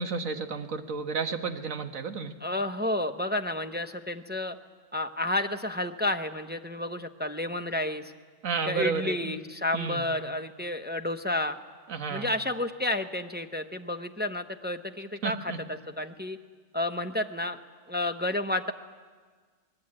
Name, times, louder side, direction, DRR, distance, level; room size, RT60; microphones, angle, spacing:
voice 1, 0.0-2.3 8.4-9.3 9.7-10.0 11.9-12.3 15.2-15.6, right 5 dB, 65° right, 7 dB, 1.7 m, -32 dB
voice 2, 2.4-4.5 4.9-8.0 8.7-11.6 12.1-15.5 16.0-16.4 16.7-17.6 17.9-18.7, left 1 dB, 10° right, 6 dB, 0.6 m, -31 dB
25.0 x 20.0 x 8.8 m, 1.5 s
omnidirectional pair, 1.5 m